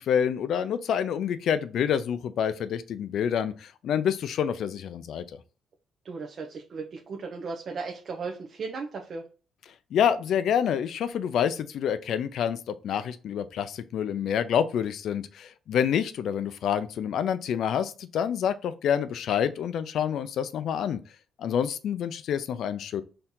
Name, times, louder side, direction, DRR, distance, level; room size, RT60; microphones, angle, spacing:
voice 1, 0.1-5.2 9.9-21.0 21.4-23.0, left 8 dB, 70° left, 0.4 m, -27 dB
voice 2, 6.0-9.2, right 4 dB, 55° right, 0.7 m, -36 dB
4.4 x 2.8 x 3.7 m
cardioid pair, 90°, 0 cm